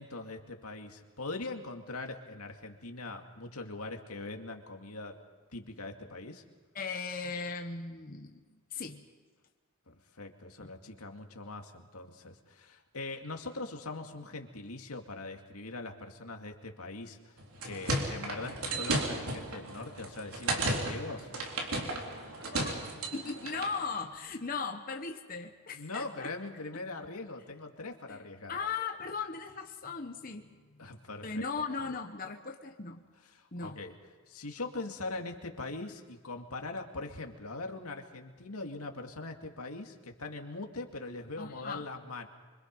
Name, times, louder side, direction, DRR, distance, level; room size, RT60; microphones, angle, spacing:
voice 1, 0.0-5.2 5.5-6.4 9.9-21.3 25.7-28.5 30.8-31.4 33.3-34.0 34.3-42.3, left 2 dB, 90° left, 4 dB, 2.3 m, -41 dB
voice 2, 6.7-9.0 10.6-10.7 22.5-22.8 23.1-26.3 28.1-28.2 28.5-30.5 31.2-33.0 33.5-33.8 41.4-41.9, left 4 dB, 40° left, 4 dB, 1.1 m, -38 dB
sound 1, 17.4-23.8, right 2 dB, 80° right, 3.8 m, -34 dB
26.0 x 25.0 x 5.4 m, 1.4 s
head